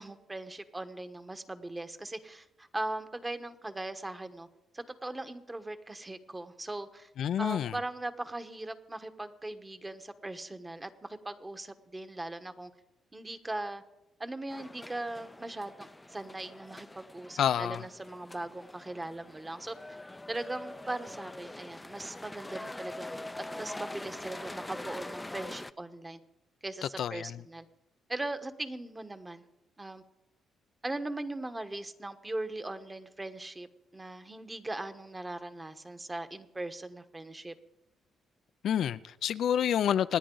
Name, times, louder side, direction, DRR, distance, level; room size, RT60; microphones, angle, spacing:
voice 1, 0.0-4.5 4.7-7.1 7.4-12.7 13.1-13.8 14.2-19.8 20.3-23.2 23.6-26.2 26.6-27.6 28.1-29.4 29.8-30.0 30.8-33.7 33.9-37.5, right 2 dB, 15° right, 1.2 m, -39 dB
voice 2, 7.2-7.7 17.4-17.8 27.0-27.4 38.6-40.2, left 9 dB, 70° left, 0.4 m, -28 dB
sound 1, 14.5-25.7, left 2 dB, 10° left, 0.5 m, -44 dB
26.5 x 10.0 x 3.9 m
cardioid pair, 90°, 0 cm